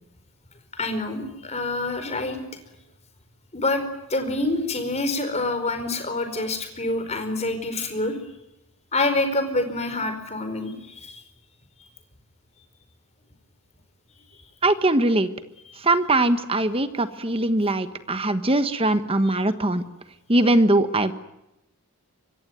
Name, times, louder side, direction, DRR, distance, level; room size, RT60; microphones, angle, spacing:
voice 1, 0.7-2.4 3.5-3.8 4.1-8.2 8.9-11.2, left 2 dB, 30° left, 8 dB, 4.8 m, -26 dB
voice 2, 14.6-15.3 15.8-19.8 20.3-21.1, right 2 dB, 25° right, 10 dB, 1.3 m, -21 dB
25.5 x 22.5 x 9.4 m, 0.89 s
head